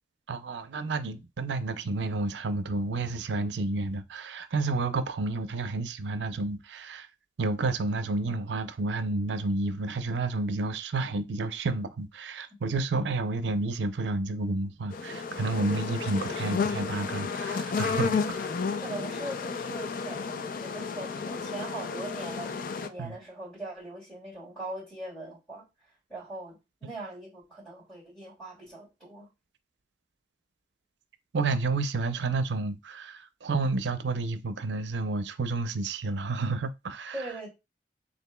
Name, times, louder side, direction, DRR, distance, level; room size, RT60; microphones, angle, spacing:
voice 1, 0.3-7.1 7.4-18.5 23.0-23.2 31.3-37.2, right 3 dB, 80° right, 0.5 m, -30 dB
sound 1, 14.9-22.9, left 5 dB, 50° left, 0.4 m, -32 dB
voice 2, 18.8-25.7 26.1-29.3 37.1-37.5, right 2 dB, 5° left, 2.5 m, -41 dB
6.7 x 2.6 x 2.2 m
head